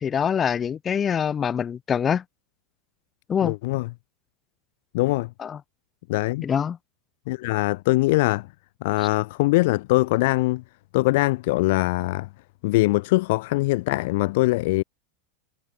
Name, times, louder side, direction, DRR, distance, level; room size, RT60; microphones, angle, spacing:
voice 1, 0.0-2.2 3.3-3.6 5.4-5.6 6.4-6.8, left 7 dB, 25° left, 1.6 m, -24 dB
voice 2, 3.4-3.9 4.9-5.3 6.1-6.5 7.3-8.5 8.8-10.6 10.9-12.3 12.6-14.8, left 21 dB, 55° left, 1.7 m, -22 dB
figure-of-eight pair, 85°, 0 cm